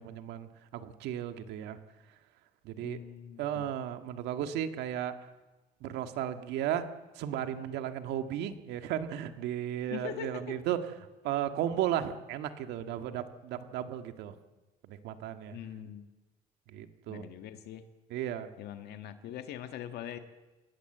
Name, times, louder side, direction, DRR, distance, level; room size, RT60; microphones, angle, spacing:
voice 1, 0.0-1.8 2.6-3.0 3.4-5.1 5.8-6.9 7.1-10.8 11.2-14.3 14.8-15.6 16.7-17.3 18.1-18.5, right 11 dB, 85° right, 8 dB, 1.8 m, -35 dB
voice 2, 2.8-3.7 9.9-10.5 15.5-16.1 17.1-17.8 18.6-20.2, left 10 dB, 75° left, 8 dB, 1.7 m, -42 dB
27.0 x 19.0 x 8.0 m, 1.1 s
cardioid pair, 110°, 17 cm